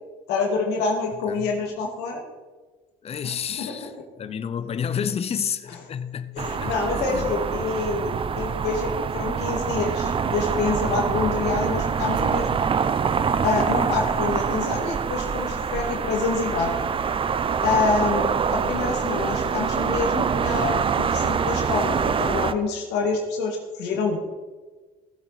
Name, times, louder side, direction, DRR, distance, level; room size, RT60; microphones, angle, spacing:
voice 1, 0.3-2.2 3.2-3.7 6.4-12.6 13.4-16.7 17.6-24.3, left 4 dB, 85° left, 2.1 m, -27 dB
voice 2, 3.0-7.3, left 7 dB, 35° left, 0.7 m, -30 dB
sound 1, 6.4-22.5, right 6 dB, 30° right, 0.6 m, -25 dB
17.0 x 7.9 x 4.1 m
cardioid pair, 110°, 17 cm